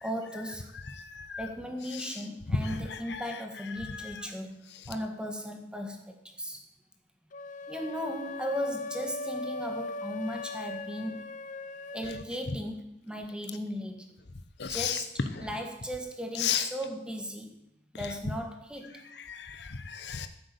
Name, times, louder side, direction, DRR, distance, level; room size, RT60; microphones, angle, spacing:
voice 1, 0.0-0.7 1.4-6.6 7.7-11.2 11.9-14.1 14.6-15.1 15.4-17.5 17.9-19.0, equal, 5° right, 4 dB, 1.7 m, -37 dB
voice 2, 0.9-1.5 1.9-2.2 2.5-3.4 3.8-4.2 12.5-12.6 14.6-15.0 15.3-15.5 16.3-16.7 18.0-18.1 19.2-20.3, left 6 dB, 70° left, 9 dB, 1.0 m, -34 dB
sound 1, 7.3-12.3, left 2 dB, 45° left, 0.6 m, -39 dB
13.5 x 7.9 x 6.9 m, 0.77 s
head